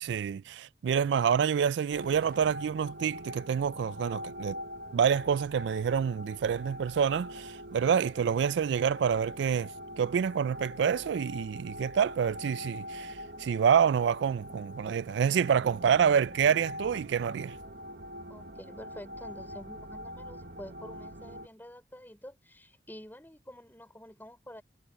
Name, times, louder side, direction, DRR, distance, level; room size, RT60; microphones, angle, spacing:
voice 1, 0.1-4.6 4.9-17.6, right 7 dB, 75° right, 0.3 m, -27 dB
sound 1, 1.9-21.5, equal, 55° right, 1.2 m, -43 dB
voice 2, 18.3-24.6, equal, 10° left, 4.7 m, -48 dB
head